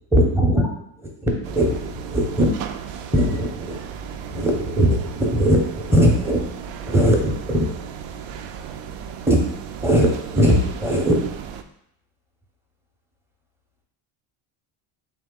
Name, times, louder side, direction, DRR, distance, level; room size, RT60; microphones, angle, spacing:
voice 1, 0.1-0.7 1.0-2.5 3.1-3.8 4.3-6.5 6.8-7.7 9.3-9.4 9.8-11.2, equal, 5° right, -1 dB, 0.6 m, -19 dB
sound 1, 1.4-11.6, right 7 dB, 85° right, 0.6 m, -35 dB
3.8 x 2.8 x 3.7 m, 0.73 s
cardioid pair, 135°, 49 cm